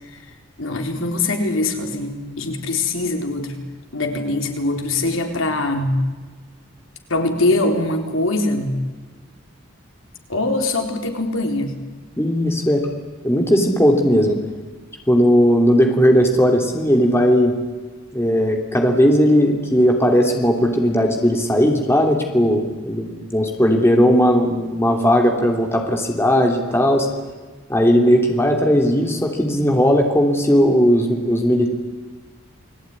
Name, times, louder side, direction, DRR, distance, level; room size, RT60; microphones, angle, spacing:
voice 1, 0.6-3.6 3.9-6.0 7.1-8.8 10.3-11.7, left 2 dB, 75° left, 4 dB, 4.0 m, -22 dB
voice 2, 12.2-12.9 13.2-14.4 15.1-17.6 18.1-27.1 27.7-31.7, equal, 10° left, 2 dB, 3.1 m, -17 dB
29.5 x 20.5 x 9.8 m, 1.3 s
head